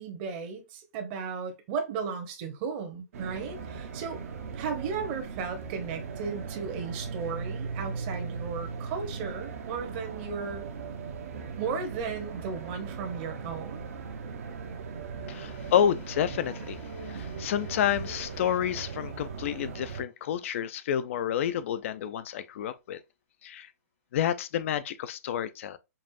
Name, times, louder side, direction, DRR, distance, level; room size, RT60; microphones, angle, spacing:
voice 1, 0.0-4.2 4.5-10.7 11.6-13.9, right 5 dB, 35° right, 1.0 m, -35 dB
sound 1, 3.1-20.0, right 5 dB, 60° right, 1.0 m, -38 dB
voice 2, 15.3-23.0 23.4-23.7 24.1-25.8, left 9 dB, 50° left, 0.5 m, -29 dB
5.3 x 2.5 x 2.6 m
hypercardioid pair, 145°, 9 cm